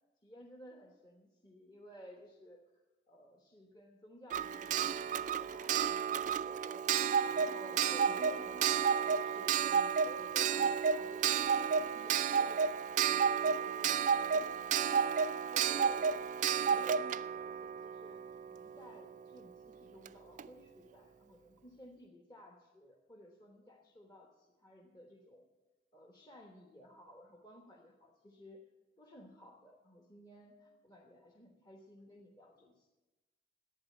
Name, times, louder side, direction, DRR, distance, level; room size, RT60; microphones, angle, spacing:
voice 1, 0.2-2.6 3.1-6.9 7.3-13.1 13.4-15.0 15.5-16.0 16.6-18.2 18.5-25.5 25.9-28.6 29.0-32.9, equal, 25° left, -1 dB, 1.2 m, -56 dB
Clock, 4.3-18.9 20.1-20.2 20.4-20.5, right 7 dB, 45° right, 0.3 m, -32 dB
11.5 x 8.7 x 8.5 m, 1.1 s
head